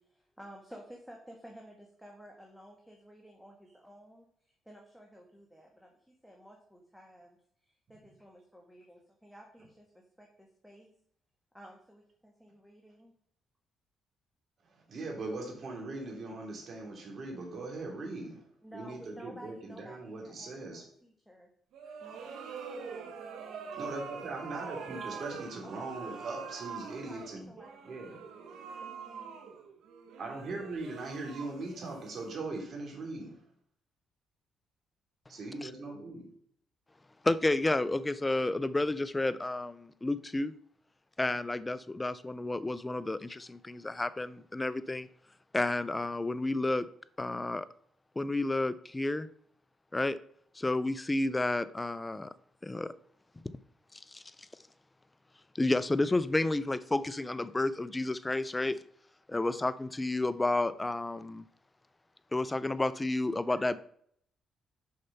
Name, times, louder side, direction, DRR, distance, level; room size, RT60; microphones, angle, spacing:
voice 1, 0.1-4.2 4.6-7.4 7.6-9.9 10.2-10.9 11.5-13.1 18.6-21.5 22.0-22.5 22.9-23.1 25.6-26.4 26.6-29.3, equal, ahead, 0 dB, 1.5 m, -53 dB
voice 2, 14.9-18.4 18.7-20.8 23.7-27.5 27.8-28.2 30.2-33.3 35.3-36.3, right 2 dB, 50° right, 0 dB, 3.1 m, -40 dB
sound 1, 21.7-32.7, right 6 dB, 80° right, 1.1 m, -44 dB
voice 3, 37.2-40.5 41.2-45.1 45.5-46.9 47.2-47.7 48.2-49.3 49.9-50.2 50.6-52.3 52.6-52.9 53.9-54.2 55.5-58.8 59.3-61.4 62.3-63.8, left 2 dB, 15° left, 15 dB, 0.5 m, -31 dB
6.6 x 5.6 x 5.5 m, 0.65 s
cardioid pair, 90°, 0 cm